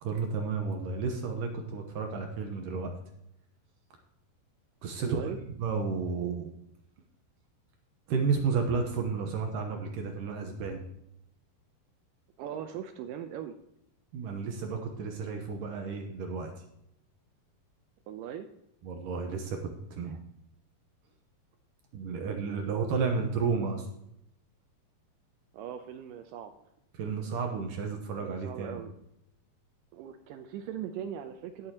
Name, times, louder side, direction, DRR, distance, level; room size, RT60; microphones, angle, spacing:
voice 1, 0.0-2.9 4.8-5.2 5.6-6.5 8.1-10.8 14.1-16.5 18.8-20.2 21.9-23.9 27.0-28.8, right 5 dB, 70° right, 3 dB, 2.3 m, -32 dB
voice 2, 5.0-5.4 12.4-13.6 18.1-18.5 20.0-20.2 25.5-26.5 28.2-28.9 29.9-31.7, right 9 dB, 90° right, 7 dB, 1.9 m, -39 dB
17.5 x 7.1 x 2.9 m, 0.79 s
omnidirectional pair, 4.6 m